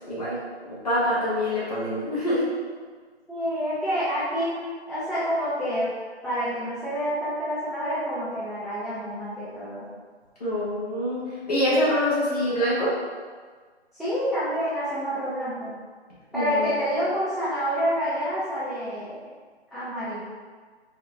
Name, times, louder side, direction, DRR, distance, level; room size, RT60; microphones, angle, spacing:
voice 1, 0.1-0.4 0.7-2.5 10.4-11.2 11.5-12.9 16.3-16.7, left 1 dB, 35° left, -9 dB, 1.4 m, -25 dB
voice 2, 3.3-5.9 6.2-9.9 13.9-15.7 16.3-19.2 19.7-20.2, equal, ahead, -13 dB, 0.3 m, -28 dB
4.5 x 2.3 x 3.4 m, 1.5 s
hypercardioid pair, 170°, 34 cm